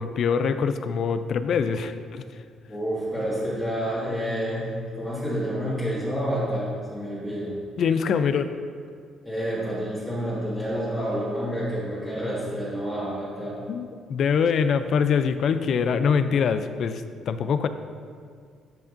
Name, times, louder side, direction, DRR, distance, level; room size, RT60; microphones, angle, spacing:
voice 1, 0.0-2.2 7.8-8.5 13.7-17.7, left 6 dB, 55° left, 11 dB, 0.4 m, -24 dB
voice 2, 2.7-7.6 9.2-13.6, equal, 15° left, -10 dB, 1.8 m, -29 dB
10.0 x 5.9 x 2.6 m, 2.2 s
cardioid pair, 120°, 0 cm